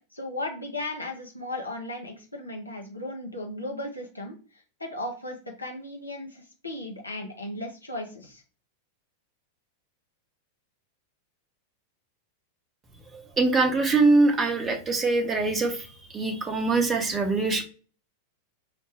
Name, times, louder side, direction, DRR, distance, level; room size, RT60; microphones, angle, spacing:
voice 1, 0.1-4.4 4.8-8.4, left 1 dB, 85° left, 1 dB, 0.7 m, -36 dB
voice 2, 13.1-15.8 16.1-17.6, right 3 dB, 20° right, 5 dB, 0.7 m, -23 dB
4.9 x 2.1 x 3.2 m, 0.38 s
figure-of-eight pair, 90°, 0 cm